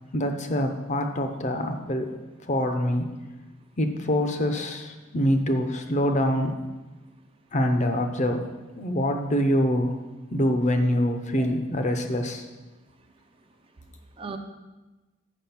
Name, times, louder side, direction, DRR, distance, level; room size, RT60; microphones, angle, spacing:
voice 1, 0.1-2.1 2.5-3.0 3.8-6.6 7.5-8.5 8.8-10.0 10.3-12.5, equal, 35° left, 6 dB, 0.7 m, -25 dB
voice 2, 7.0-7.4 10.4-10.5 10.8-10.9 11.4-11.6 12.7-14.4, right 4 dB, 25° right, 6 dB, 0.5 m, -45 dB
7.2 x 6.2 x 5.9 m, 1.1 s
head